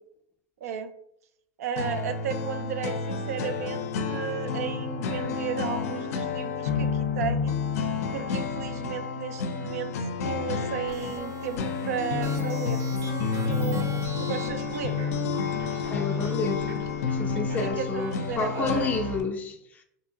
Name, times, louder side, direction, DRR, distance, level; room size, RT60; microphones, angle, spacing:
voice 1, 0.6-0.9 1.6-7.5 8.1-10.0 10.2-12.8 13.5-15.1 17.6-18.9, right 7 dB, 90° right, 0.4 m, -34 dB
sound 1, 1.8-19.2, left 5 dB, 80° left, 0.4 m, -30 dB
sound 2, 10.9-19.2, right 3 dB, 45° right, 0.6 m, -42 dB
voice 2, 15.9-16.7 17.1-19.8, left 3 dB, 20° left, 0.4 m, -30 dB
2.6 x 2.4 x 2.8 m
supercardioid pair, 125°, 8 cm